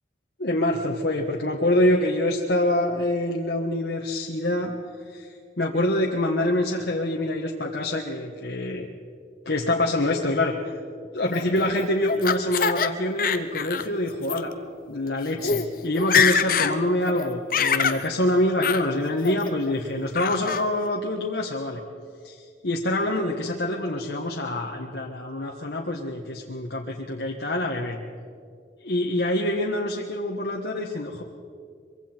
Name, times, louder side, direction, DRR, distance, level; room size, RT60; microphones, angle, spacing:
voice 1, 0.4-4.7 5.1-5.3 5.6-8.9 9.4-10.8 11.1-14.5 14.9-21.8 22.2-28.0 28.9-31.2, left 1 dB, 70° left, -1 dB, 1.5 m, -25 dB
Laughter, 11.3-12.9 13.2-13.9 14.2-14.4 15.1-15.2 15.4-15.7 15.9-16.7 17.1-18.0 18.6-18.8 19.2-19.7 20.1-20.6, left 6 dB, 50° left, 0.8 m, -24 dB
24.0 x 24.0 x 4.5 m, 2.2 s
head